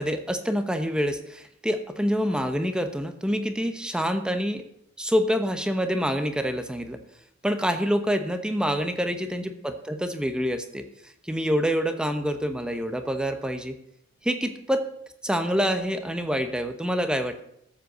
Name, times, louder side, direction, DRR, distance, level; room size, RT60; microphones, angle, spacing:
voice 1, 0.0-4.6 5.0-7.0 7.4-10.8 11.2-13.8 14.2-14.9 15.2-17.5, equal, 5° right, 7 dB, 1.0 m, -26 dB
13.5 x 7.9 x 6.8 m, 0.72 s
head